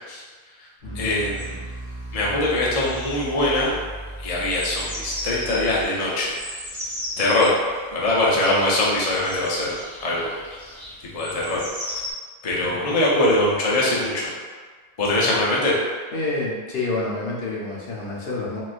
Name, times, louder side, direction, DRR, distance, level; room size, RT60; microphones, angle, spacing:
sound 1, 0.8-5.8, right 1 dB, 20° left, 1.2 m, -37 dB
voice 1, 0.9-1.6 2.1-3.8 4.2-6.4 7.2-7.6 7.9-9.7 10.0-10.6 11.1-12.0 12.4-14.3 15.0-15.7, left 1 dB, 45° left, -5 dB, 0.6 m, -22 dB
sound 2, 1.3-12.1, equal, 20° right, 0.9 m, -37 dB
voice 2, 12.7-13.0 15.1-15.3 16.1-18.6, left 2 dB, 70° left, -5 dB, 0.9 m, -29 dB
4.0 x 2.4 x 2.4 m, 1.5 s
omnidirectional pair, 1.1 m